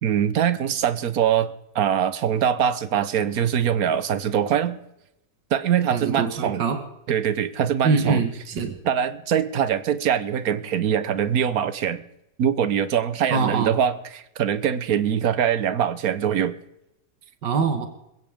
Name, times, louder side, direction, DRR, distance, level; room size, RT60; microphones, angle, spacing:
voice 1, 0.0-4.8 5.5-6.6 7.1-8.2 8.8-12.0 12.4-16.6, right 9 dB, 60° right, 13 dB, 1.3 m, -23 dB
voice 2, 5.9-6.8 7.8-8.7 13.3-13.8 17.4-17.9, right 5 dB, 75° right, 6 dB, 2.2 m, -23 dB
21.5 x 16.0 x 3.6 m, 0.87 s
omnidirectional pair, 1.9 m